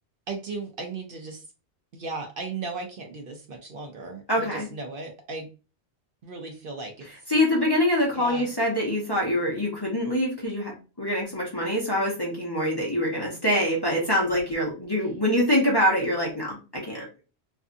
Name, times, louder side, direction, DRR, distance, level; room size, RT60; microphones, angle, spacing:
voice 1, 0.3-1.4 1.9-5.5 6.2-7.1 8.1-8.5, right 3 dB, 60° right, 2 dB, 0.7 m, -36 dB
voice 2, 4.3-4.7 7.3-17.1, left 1 dB, 25° left, -4 dB, 0.7 m, -25 dB
2.6 x 2.4 x 2.4 m, 0.32 s
omnidirectional pair, 1.1 m